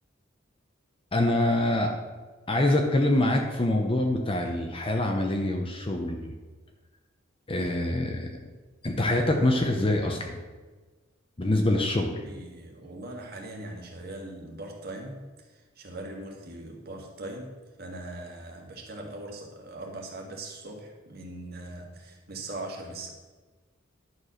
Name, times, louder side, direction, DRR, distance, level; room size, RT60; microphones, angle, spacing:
voice 1, 1.1-1.9 2.5-6.3 7.5-8.3 8.8-10.3 11.4-12.1, left 1 dB, 30° left, 2 dB, 0.8 m, -25 dB
voice 2, 11.7-23.1, right 2 dB, 55° right, 0 dB, 1.8 m, -41 dB
11.0 x 4.7 x 6.4 m, 1.3 s
head